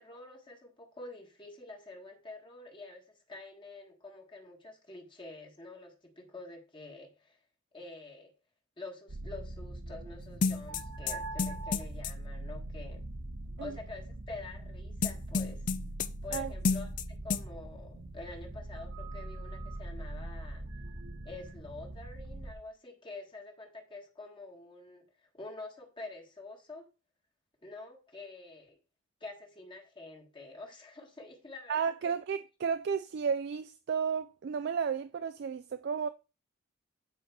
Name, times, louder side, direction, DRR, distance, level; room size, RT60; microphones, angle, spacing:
voice 1, 0.0-7.4 7.7-8.3 8.8-13.0 13.6-15.6 16.2-20.6 21.2-25.0 25.3-26.9 27.6-28.8 29.2-32.1, left 2 dB, 25° left, 1.4 m, -47 dB
sound 1, 9.1-22.5, right 1 dB, 85° right, 1.4 m, -42 dB
sound 2, 10.4-12.1 15.0-16.4 16.6-17.0 17.3-17.4, left 5 dB, 40° left, 0.4 m, -30 dB
voice 2, 31.7-36.1, right 6 dB, 55° right, 0.3 m, -33 dB
8.7 x 4.3 x 4.6 m
head